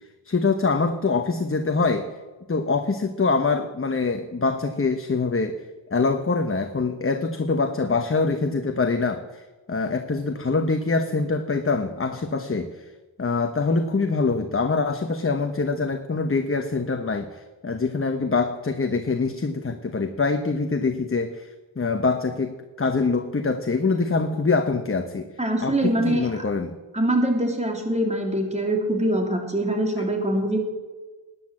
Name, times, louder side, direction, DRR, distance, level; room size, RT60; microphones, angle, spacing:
voice 1, 0.2-2.1 2.5-5.6 5.9-12.8 13.2-25.3 25.6-26.7, left 4 dB, 25° left, 6 dB, 1.0 m, -24 dB
voice 2, 25.4-26.3 26.9-30.6, right 1 dB, 15° right, 2 dB, 3.0 m, -23 dB
19.0 x 9.8 x 7.6 m, 1.2 s
wide cardioid pair, 115°, 47 cm